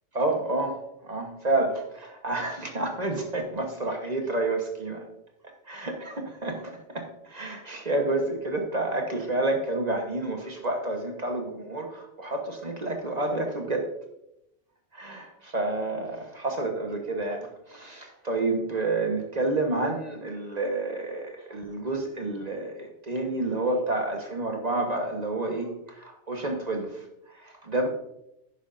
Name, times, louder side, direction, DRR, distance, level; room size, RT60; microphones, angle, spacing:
voice 1, 0.1-5.0 5.7-13.9 14.9-27.9, right 2 dB, 35° right, 3 dB, 1.3 m, -29 dB
11.0 x 9.7 x 2.6 m, 0.84 s
omnidirectional pair, 1.2 m